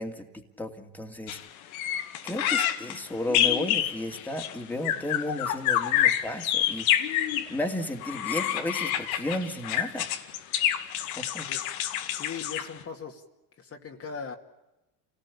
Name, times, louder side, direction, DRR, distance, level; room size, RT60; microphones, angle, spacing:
voice 1, 0.0-1.4 1.7-1.9 2.2-6.9 7.5-10.1 11.2-11.5, left 1 dB, 5° left, 3 dB, 2.6 m, -34 dB
sound 1, 1.3-1.4 1.7-7.5 8.0-12.8, left 11 dB, 90° left, 2.1 m, -27 dB
voice 2, 12.1-13.2 13.6-14.3, left 6 dB, 35° left, 3 dB, 2.2 m, -39 dB
28.0 x 18.5 x 8.5 m, 1.0 s
supercardioid pair, 105°, 41 cm